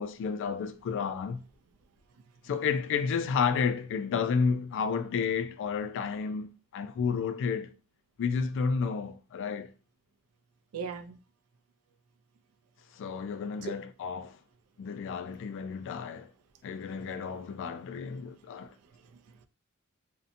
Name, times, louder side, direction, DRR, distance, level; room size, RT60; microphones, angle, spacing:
voice 1, 0.0-1.4 2.4-7.7 8.2-9.7 12.9-14.4 14.8-16.3 16.6-18.8, left 5 dB, 60° left, 0.3 m, -31 dB
voice 2, 10.7-11.2 13.6-13.7 15.2-15.3 17.0-17.1 18.9-19.5, right 5 dB, 90° right, 0.4 m, -40 dB
2.6 x 2.1 x 2.5 m
head